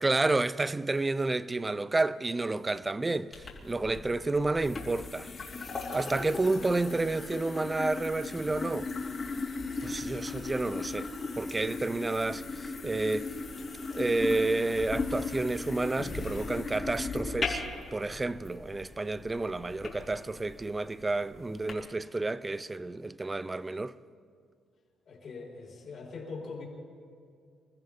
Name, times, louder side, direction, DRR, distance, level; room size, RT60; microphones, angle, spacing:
voice 1, 0.0-5.3 5.9-8.9 9.8-13.3 13.9-17.6 17.9-24.0, right 2 dB, 20° right, 0.5 m, -30 dB
sound 1, 3.3-21.7, left 3 dB, 40° left, 3.2 m, -38 dB
voice 2, 25.1-26.6, left 4 dB, 60° left, 3.9 m, -42 dB
27.0 x 14.5 x 3.6 m
cardioid pair, 90°, 0 cm